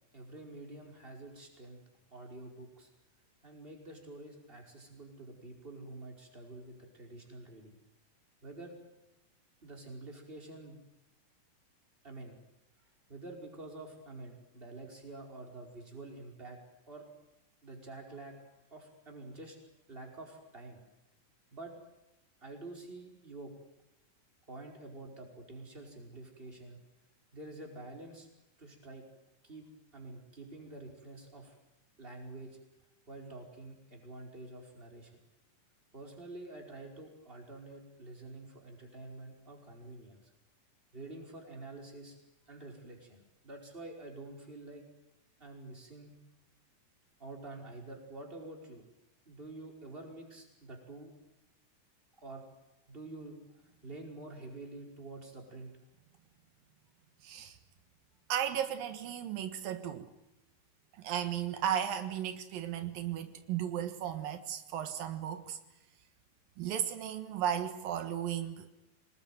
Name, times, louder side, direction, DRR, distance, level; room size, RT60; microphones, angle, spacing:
voice 1, 0.1-1.8 2.1-2.9 3.4-7.8 8.4-8.8 9.6-10.8 12.0-12.4 13.1-16.6 16.9-17.1 17.6-19.6 19.9-20.8 21.5-21.8 22.4-23.6 24.5-26.8 27.3-28.3 28.6-29.1 29.4-31.5 32.0-32.6 33.1-35.2 35.9-40.3 40.9-42.2 42.5-44.9 45.4-46.2 47.2-48.8 49.2-51.2 52.2-52.5 52.9-55.8, right 2 dB, 15° right, 5.2 m, -48 dB
voice 2, 57.2-57.6 58.3-60.1 61.0-65.6 66.6-68.7, right 10 dB, 85° right, 3.2 m, -35 dB
26.5 x 20.0 x 9.3 m
omnidirectional pair, 3.9 m